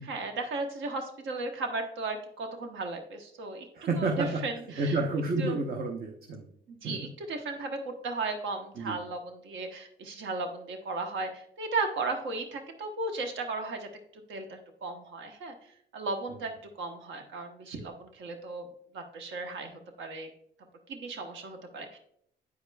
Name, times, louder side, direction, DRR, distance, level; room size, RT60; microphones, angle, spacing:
voice 1, 0.0-3.7 4.0-5.0 5.4-5.6 6.7-13.9 14.3-15.5 15.9-16.5 16.8-18.7 18.9-20.3 20.9-22.0, right 3 dB, 75° right, 5 dB, 1.0 m, -35 dB
voice 2, 3.7-4.4 4.8-6.5 6.8-7.0 8.8-9.0, right 3 dB, 50° right, 1 dB, 0.8 m, -30 dB
9.3 x 4.8 x 2.3 m, 0.69 s
cardioid pair, 90°, 20 cm